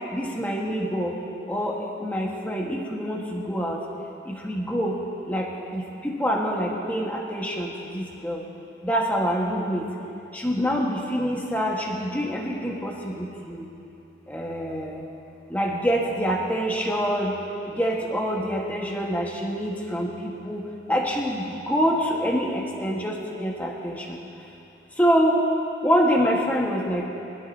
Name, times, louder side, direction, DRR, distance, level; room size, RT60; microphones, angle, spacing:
voice 1, 0.1-1.1 1.5-3.8 4.3-5.0 5.3-5.5 5.7-8.4 8.8-9.8 10.3-13.7 14.3-15.0 15.5-17.4 17.8-24.2 25.0-25.4 25.8-27.1, equal, 10° left, -2 dB, 1.5 m, -26 dB
24.5 x 12.5 x 2.8 m, 2.7 s
head